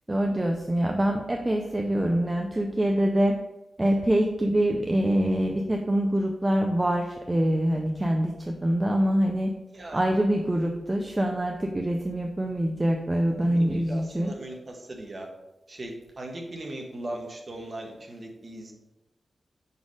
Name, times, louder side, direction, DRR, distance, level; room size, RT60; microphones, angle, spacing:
voice 1, 0.1-3.4 3.8-9.5 9.9-14.3, right 1 dB, 15° right, 2 dB, 0.4 m, -25 dB
voice 2, 13.5-14.5 15.0-15.3 15.8-15.9 16.2-18.7, right 1 dB, 30° right, 1 dB, 0.9 m, -38 dB
4.9 x 4.2 x 4.8 m, 0.98 s
wide cardioid pair, 170°, 0 cm